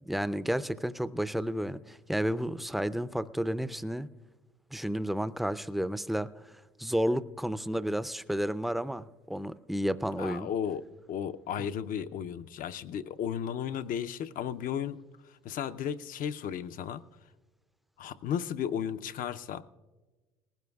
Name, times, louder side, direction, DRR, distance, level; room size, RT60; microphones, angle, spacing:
voice 1, 0.0-4.1 4.7-6.3 6.8-10.5, equal, ahead, 15 dB, 0.5 m, -31 dB
voice 2, 10.2-15.0 15.4-17.0 18.0-19.6, left 8 dB, 60° left, 10 dB, 0.6 m, -34 dB
19.0 x 16.0 x 2.3 m, 1.3 s
supercardioid pair, 70°, 17 cm